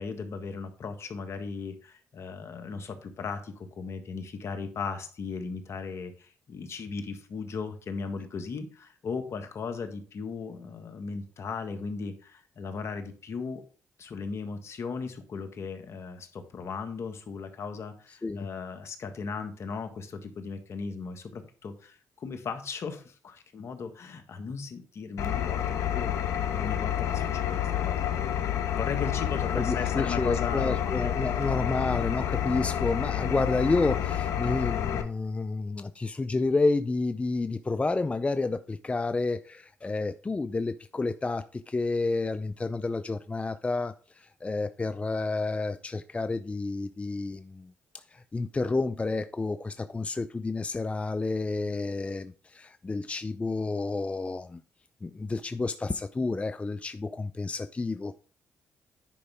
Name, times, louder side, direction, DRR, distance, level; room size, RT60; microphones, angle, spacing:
voice 1, 0.0-13.6 14.0-31.1, left 5 dB, 60° left, 1.6 m, -37 dB
Engine, 25.2-35.0, left 10 dB, 75° left, 1.2 m, -29 dB
voice 2, 29.5-54.6 55.0-58.1, left 3 dB, 25° left, 0.5 m, -30 dB
10.0 x 5.3 x 3.5 m
supercardioid pair, 60°, 5 cm